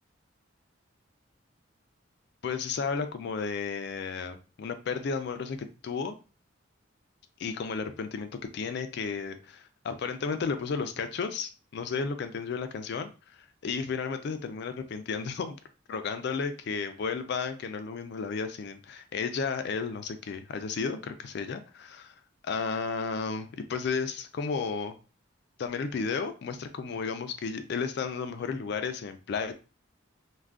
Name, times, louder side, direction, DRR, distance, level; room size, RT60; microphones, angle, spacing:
voice 1, 2.4-6.2 7.4-15.6 15.9-22.1 22.4-25.0 25.6-29.5, left 5 dB, 55° left, 0.3 m, -33 dB
2.4 x 2.2 x 3.4 m
head